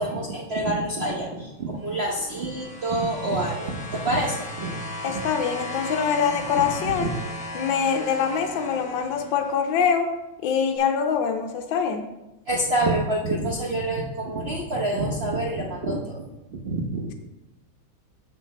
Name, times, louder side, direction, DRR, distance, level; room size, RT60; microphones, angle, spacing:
voice 1, 0.0-4.8 5.1-5.2 6.6-7.1 12.5-17.1, right 1 dB, 80° right, -3 dB, 0.5 m, -27 dB
sound 1, 1.9-9.7 10.8-10.9, left 1 dB, 10° left, 0.4 m, -37 dB
voice 2, 5.0-7.1 7.5-10.1 10.4-12.0, left 7 dB, 70° left, 4 dB, 1.4 m, -24 dB
6.6 x 5.9 x 4.1 m, 0.99 s
omnidirectional pair, 2.3 m